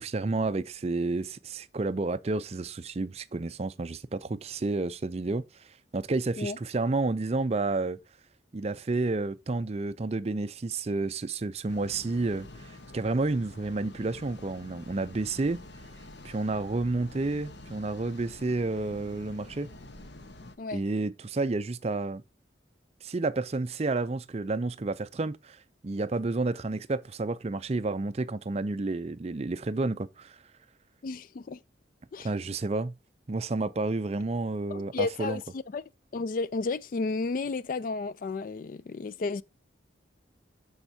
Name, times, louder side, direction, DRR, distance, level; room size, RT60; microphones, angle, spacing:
voice 1, 0.0-5.4 5.9-8.0 8.5-12.7 12.9-15.6 16.2-19.7 20.7-22.2 23.0-25.6 25.8-30.4 32.2-32.9 33.3-35.4, right 3 dB, 35° right, 0.4 m, -30 dB
sound 1, 11.7-20.6, left 2 dB, 65° left, 1.0 m, -47 dB
voice 2, 31.0-31.6 32.1-32.3 34.7-35.4 35.7-35.8 36.1-39.4, left 3 dB, 45° left, 0.3 m, -32 dB
13.0 x 4.4 x 2.7 m
head